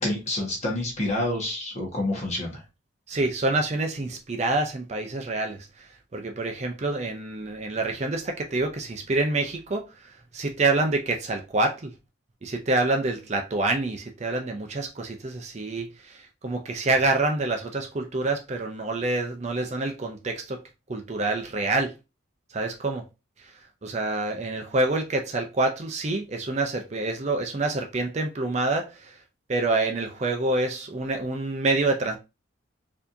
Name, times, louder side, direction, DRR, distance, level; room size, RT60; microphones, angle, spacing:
voice 1, 0.0-2.6, left 1 dB, 35° left, 1.3 m, -28 dB
voice 2, 3.1-11.9 12.4-20.6 20.9-21.9 22.5-23.1 23.4-23.5 23.8-29.2 29.5-32.2, right 2 dB, 35° right, 0.5 m, -27 dB
4.4 x 2.8 x 2.6 m
head